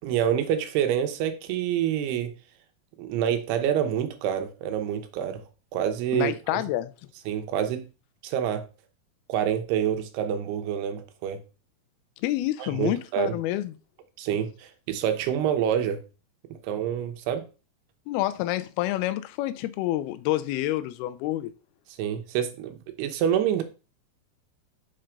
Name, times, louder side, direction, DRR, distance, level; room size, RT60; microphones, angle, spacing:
voice 1, 0.0-2.3 3.0-5.4 5.7-6.6 7.3-7.9 8.2-8.6 9.3-11.4 12.6-13.3 14.2-16.0 16.6-17.4 22.0-23.6, right 9 dB, 85° right, 3.0 m, -27 dB
voice 2, 6.1-6.9 12.2-13.7 18.1-21.5, left 15 dB, 80° left, 2.5 m, -28 dB
6.6 x 4.5 x 5.1 m
omnidirectional pair, 4.6 m